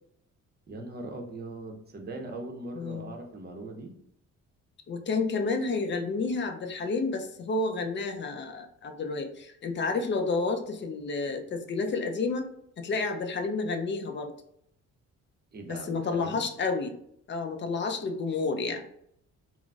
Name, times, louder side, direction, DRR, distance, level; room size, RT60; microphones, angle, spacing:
voice 1, 0.7-3.9 15.5-16.4, right 2 dB, 35° right, 3 dB, 0.6 m, -40 dB
voice 2, 2.7-3.1 4.9-12.5 12.8-14.3 15.7-16.9 17.3-18.8, left 3 dB, 40° left, 5 dB, 0.4 m, -30 dB
3.7 x 2.0 x 2.3 m, 0.71 s
cardioid pair, 90°, 30 cm